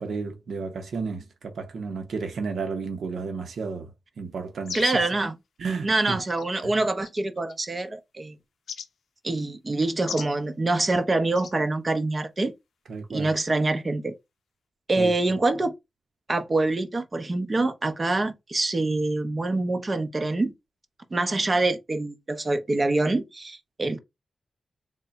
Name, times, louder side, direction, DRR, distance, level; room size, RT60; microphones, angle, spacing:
voice 1, 0.0-3.9 4.2-5.0 5.6-6.2 6.6-6.7 12.9-13.3 15.0-15.1, right 4 dB, 80° right, 0.7 m, -32 dB
sound 1, 4.6-5.1 6.3-6.5 7.0-7.5 8.7-8.9 10.1-10.3 11.3-11.5, left 6 dB, 80° left, 0.5 m, -35 dB
voice 2, 4.7-5.3 5.8-8.3 9.2-12.5 13.1-14.1 14.9-15.7 16.3-20.5 21.1-24.0, right 2 dB, 35° right, 0.7 m, -25 dB
3.3 x 2.1 x 3.9 m
cardioid pair, 75°, 0 cm